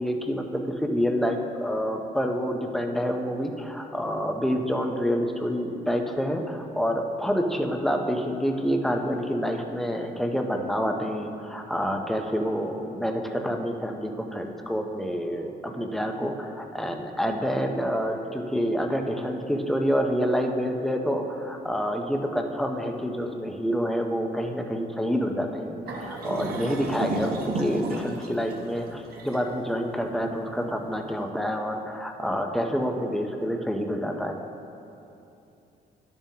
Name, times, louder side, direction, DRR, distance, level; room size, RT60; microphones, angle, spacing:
voice 1, 0.0-34.3, equal, ahead, 3 dB, 0.6 m, -28 dB
sound 1, 25.9-31.0, right 2 dB, 60° right, 1.1 m, -33 dB
12.5 x 7.1 x 2.8 m, 2.8 s
cardioid pair, 135°, 18 cm